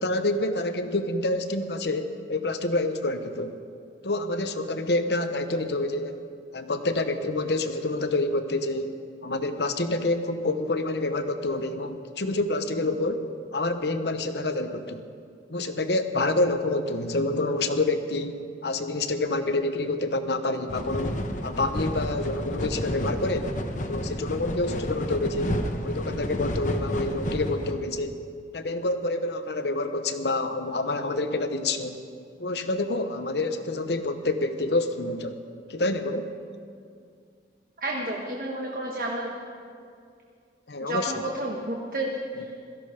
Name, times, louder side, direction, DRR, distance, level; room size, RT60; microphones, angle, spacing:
voice 1, 0.0-3.6 4.0-6.2 6.5-8.9 9.2-13.2 13.5-15.0 15.5-21.2 21.4-23.5 23.9-28.2 28.5-32.0 32.4-35.4 35.7-36.3 40.7-41.1, left 2 dB, 70° left, 8 dB, 0.9 m, -27 dB
sound 1, 20.7-27.7, left 1 dB, 45° left, 1.0 m, -31 dB
voice 2, 37.8-39.3 40.8-42.6, right 1 dB, 50° right, -1 dB, 1.3 m, -31 dB
16.5 x 14.0 x 5.1 m, 2.3 s
head